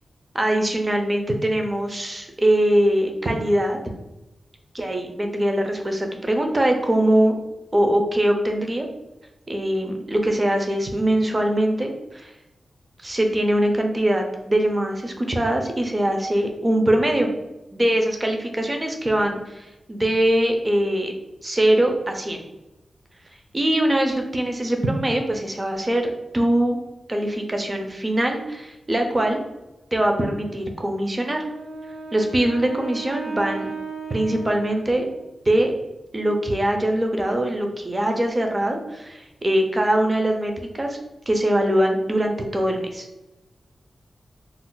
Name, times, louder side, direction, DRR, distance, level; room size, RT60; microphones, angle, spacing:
voice 1, 0.3-3.8 4.7-7.3 7.7-8.9 9.5-12.3 13.0-17.3 17.7-21.1 21.4-22.4 23.5-26.8 27.1-29.4 29.9-31.4 32.1-33.7 34.1-35.0 35.5-35.7 36.1-41.0 41.3-43.1, right 1 dB, 20° right, 3 dB, 0.4 m, -22 dB
Wind instrument woodwind instrument, 31.2-35.5, right 4 dB, 85° right, 0.4 m, -36 dB
2.4 x 2.1 x 3.7 m, 0.97 s
wide cardioid pair, 145°, 0 cm